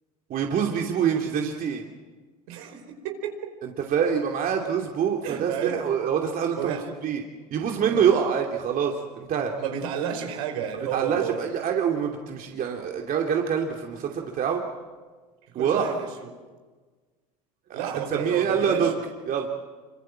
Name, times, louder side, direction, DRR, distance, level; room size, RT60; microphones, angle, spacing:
voice 1, 0.3-1.8 3.6-6.8 7.0-7.2 7.5-9.5 10.9-14.6 15.5-15.9 17.7-18.9 19.3-19.5, right 7 dB, 45° right, 2.8 m, -25 dB
voice 2, 2.5-3.5 5.2-5.9 6.5-6.9 7.8-8.2 9.6-11.5 15.5-16.1 17.7-18.9, right 8 dB, 70° right, 4.7 m, -31 dB
27.0 x 25.0 x 7.7 m
hypercardioid pair, 80°, 20 cm